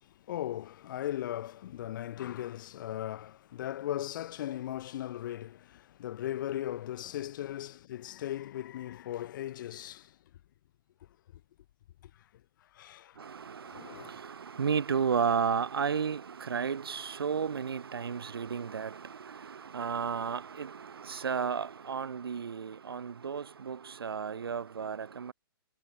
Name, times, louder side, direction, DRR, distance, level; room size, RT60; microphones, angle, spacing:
voice 1, 0.0-10.1 12.7-13.2 13.6-14.2, left 12 dB, 55° left, 6.6 m, -38 dB
voice 2, 13.2-25.3, right 6 dB, 75° right, 7.3 m, -33 dB
hypercardioid pair, 120°, 12 cm